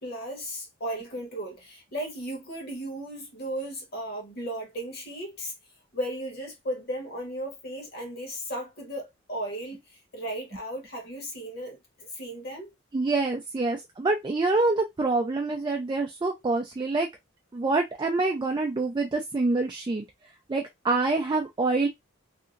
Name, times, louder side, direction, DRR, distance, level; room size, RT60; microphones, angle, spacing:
voice 1, 0.0-5.5 5.9-12.7, right 1 dB, 50° left, 1.2 m, -35 dB
voice 2, 12.9-17.1 17.5-20.1 20.5-21.9, right 3 dB, 20° right, 0.3 m, -26 dB
2.8 x 2.6 x 2.5 m
head